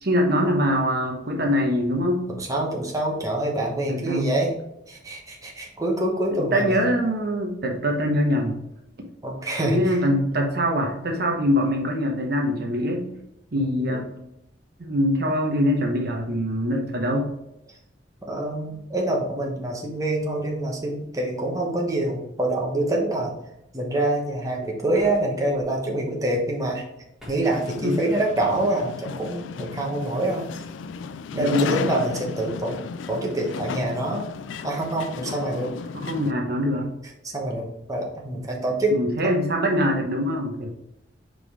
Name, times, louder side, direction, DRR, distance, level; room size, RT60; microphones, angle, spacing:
voice 1, 0.0-2.3 3.9-4.3 6.3-8.6 9.6-13.1 13.5-14.1 14.8-17.3 27.8-28.0 31.3-31.8 35.9-36.9 38.9-40.7, equal, 55° right, 1 dB, 0.9 m, -23 dB
voice 2, 2.3-4.5 4.9-6.8 9.2-10.0 13.5-14.0 18.3-23.3 23.7-26.8 27.3-30.5 31.3-32.8 33.1-34.3 34.6-35.7 37.2-38.9, right 1 dB, 20° right, -2 dB, 1.1 m, -26 dB
sound 1, 24.9-25.7 27.2-27.7, left 1 dB, ahead, 1.4 m, -46 dB
sound 2, 27.4-36.3, left 6 dB, 90° left, 0.3 m, -34 dB
5.1 x 3.8 x 4.9 m, 0.84 s
head